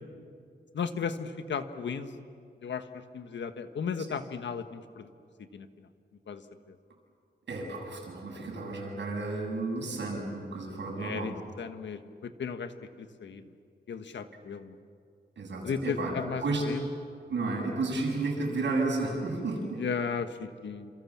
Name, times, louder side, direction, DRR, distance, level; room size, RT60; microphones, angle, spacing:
voice 1, 0.7-2.1 2.6-2.8 3.1-5.0 5.5-5.6 6.3-6.4 11.0-12.7 13.2-13.4 13.9-14.7 15.6-16.4 16.7-16.8 19.8-20.9, left 6 dB, 80° left, 9 dB, 1.4 m, -35 dB
voice 2, 7.5-11.3 15.4-16.2 16.4-16.6 17.3-19.8, right 3 dB, 70° right, 0 dB, 7.4 m, -32 dB
28.5 x 27.5 x 7.4 m, 2.3 s
wide cardioid pair, 170°, 19 cm